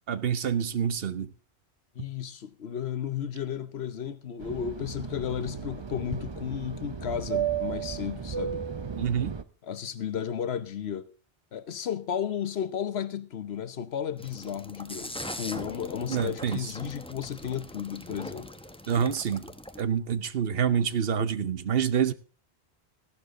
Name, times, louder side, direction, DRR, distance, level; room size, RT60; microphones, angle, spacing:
voice 1, 0.1-1.3 9.0-9.4 16.1-16.7 18.9-19.5 19.8-22.1, right 8 dB, 65° right, 1.0 m, -27 dB
voice 2, 1.9-8.6 9.6-11.1 11.5-18.5, left 8 dB, 75° left, 1.1 m, -33 dB
Fixed-wing aircraft airplane, 4.4-9.4, right 7 dB, 30° right, 0.7 m, -34 dB
sound 1, 14.2-19.8, left 1 dB, 5° left, 0.7 m, -41 dB
14.5 x 11.5 x 3.7 m
omnidirectional pair, 1.1 m